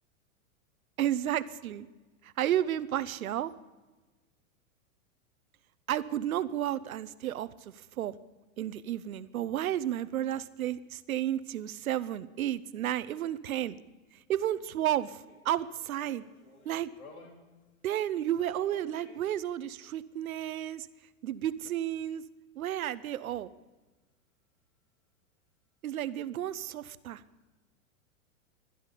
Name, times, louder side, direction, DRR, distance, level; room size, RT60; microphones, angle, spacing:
voice 1, 1.0-1.9 2.2-3.5 5.9-7.5 7.7-8.1 8.6-13.8 14.3-16.2 16.6-16.9 17.8-20.9 21.2-22.2 22.6-23.5 25.8-27.2, right 11 dB, 90° right, 15 dB, 1.0 m, -32 dB
sound 1, 14.3-17.7 18.1-19.3 22.8-22.9, left 3 dB, 85° left, 4.3 m, -56 dB
25.0 x 10.5 x 5.1 m, 1.2 s
hypercardioid pair, 130°, 41 cm